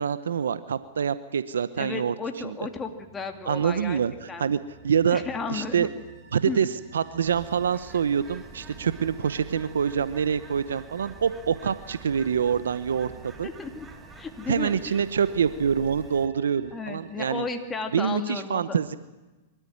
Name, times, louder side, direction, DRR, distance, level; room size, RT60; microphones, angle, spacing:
voice 1, 0.0-2.1 2.4-2.5 3.5-4.6 4.8-5.2 5.5-5.9 6.3-13.5 14.5-17.4 17.9-19.0, right 7 dB, 85° right, 14 dB, 0.9 m, -26 dB
voice 2, 1.8-4.0 4.3-4.5 5.1-5.9 6.5-6.6 13.4-13.9 14.2-15.0 16.7-18.6, left 4 dB, 15° left, 5 dB, 2.5 m, -34 dB
sound 1, 2.7-18.2, right 3 dB, 35° right, 5.1 m, -51 dB
Bird, 7.3-16.3, right 4 dB, 15° right, 2.1 m, -48 dB
25.5 x 14.0 x 10.0 m, 1.2 s
hypercardioid pair, 120°, 0 cm